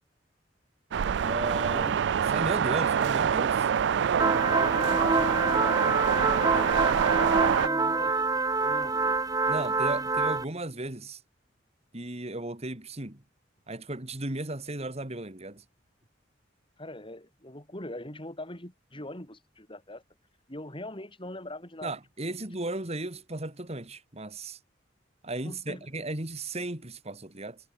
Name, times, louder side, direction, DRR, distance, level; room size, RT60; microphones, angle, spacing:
sound 1, 0.9-7.7, right 8 dB, 65° right, 0.3 m, -26 dB
voice 1, 1.2-3.7 9.4-11.2 11.9-13.2 13.7-15.6 21.8-24.6 25.2-27.6, right 2 dB, 35° right, 2.8 m, -35 dB
sound 2, 4.2-10.4, right 3 dB, 20° right, 1.0 m, -26 dB
voice 2, 4.6-6.0 6.3-8.3 8.6-9.2 16.8-20.0 20.5-21.9 22.4-22.5 25.4-25.9, left 1 dB, 30° left, 6.2 m, -42 dB
head